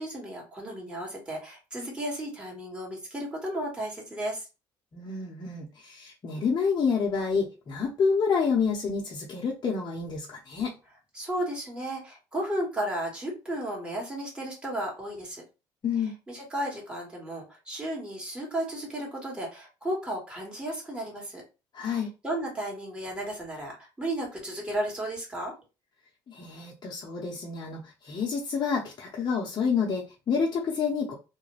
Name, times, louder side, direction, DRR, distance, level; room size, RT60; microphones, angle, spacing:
voice 1, 0.0-4.5 11.1-15.4 16.3-21.4 21.8-25.5, right 1 dB, 10° right, -3 dB, 1.3 m, -34 dB
voice 2, 4.9-10.7 15.8-16.2 21.7-22.1 26.3-31.2, left 5 dB, 40° left, -3 dB, 0.7 m, -28 dB
2.4 x 2.2 x 3.1 m, 0.30 s
supercardioid pair, 70°, 11 cm